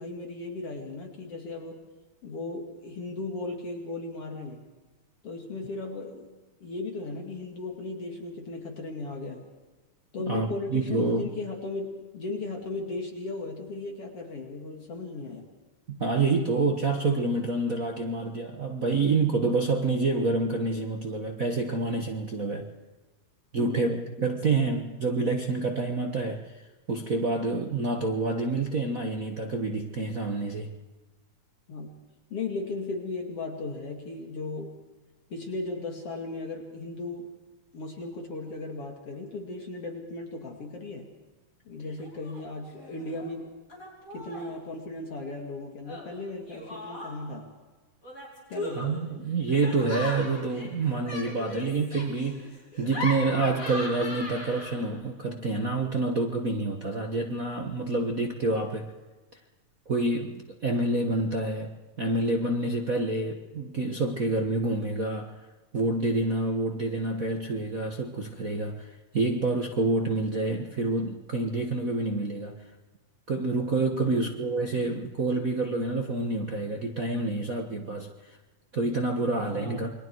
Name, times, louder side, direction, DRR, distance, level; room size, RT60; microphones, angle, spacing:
voice 1, 0.0-1.8 2.2-4.7 5.2-6.3 6.6-9.4 10.1-15.5 23.6-23.9 31.7-32.0 32.3-34.8 35.3-37.3 37.7-41.1 41.7-43.5 44.1-47.5 48.5-49.2 74.0-74.4 79.5-79.9, left 3 dB, 50° left, 2 dB, 3.2 m, -36 dB
voice 2, 10.3-11.3 15.9-22.7 23.5-30.8 48.7-58.9 59.9-65.4 65.7-72.7 73.3-78.4 78.7-79.9, right 3 dB, 45° right, 1 dB, 1.2 m, -28 dB
Laughter, 42.0-42.4 42.7-43.3 43.7-44.5 45.8-47.4 48.0-55.0, left 1 dB, 25° left, 6.2 m, -39 dB
29.0 x 23.0 x 4.7 m, 1.2 s
omnidirectional pair, 3.4 m